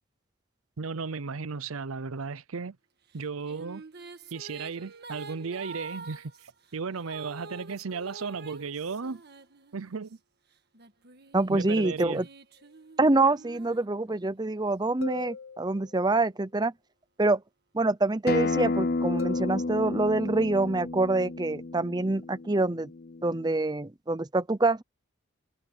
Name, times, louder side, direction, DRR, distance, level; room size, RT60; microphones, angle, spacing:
voice 1, 0.8-2.8 3.1-3.8 4.3-9.2 9.7-10.2 11.5-12.3, right 5 dB, 80° right, 0.7 m, -35 dB
sound 1, 3.1-10.1 10.7-14.5, right 3 dB, 50° right, 1.7 m, -47 dB
voice 2, 11.3-12.2 13.0-16.7 17.2-17.4 17.7-22.9 23.2-24.8, right 2 dB, 20° right, 0.6 m, -26 dB
sound 2, 12.6-12.7 15.0-16.2 19.2-20.3, left 5 dB, 85° left, 2.4 m, -41 dB
Acoustic guitar, 18.3-23.5, left 3 dB, 45° left, 0.6 m, -31 dB
head